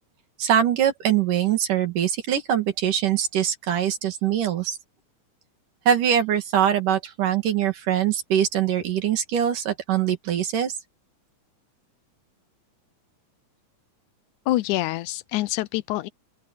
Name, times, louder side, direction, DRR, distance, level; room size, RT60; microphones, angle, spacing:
voice 1, 0.4-4.8 5.9-10.7, right 10 dB, 90° right, 3.9 m, -23 dB
voice 2, 14.5-16.1, left 16 dB, 80° left, 2.0 m, -26 dB
open air
omnidirectional pair, 3.6 m